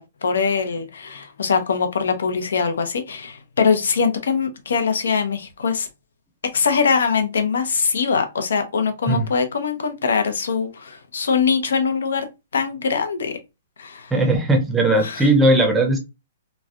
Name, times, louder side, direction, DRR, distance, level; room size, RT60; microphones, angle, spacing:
voice 1, 0.0-5.9 6.4-12.3 12.5-13.4 13.8-14.1 15.0-15.3, left 5 dB, 90° left, 0.8 m, -22 dB
voice 2, 14.1-16.0, right 1 dB, 5° right, 0.6 m, -18 dB
3.1 x 2.3 x 2.4 m
hypercardioid pair, 165°, 0 cm